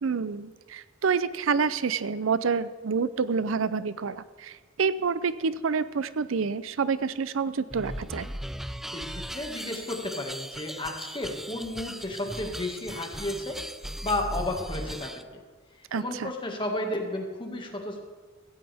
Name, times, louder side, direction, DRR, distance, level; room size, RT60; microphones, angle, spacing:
voice 1, 0.0-8.3 15.9-16.3, right 5 dB, 70° right, 15 dB, 0.5 m, -28 dB
sound 1, 7.7-15.2, equal, ahead, 0.3 m, -38 dB
voice 2, 8.9-13.6 14.0-15.1 15.9-18.0, left 1 dB, 25° left, 2 dB, 1.9 m, -32 dB
16.5 x 15.5 x 3.5 m, 1.4 s
head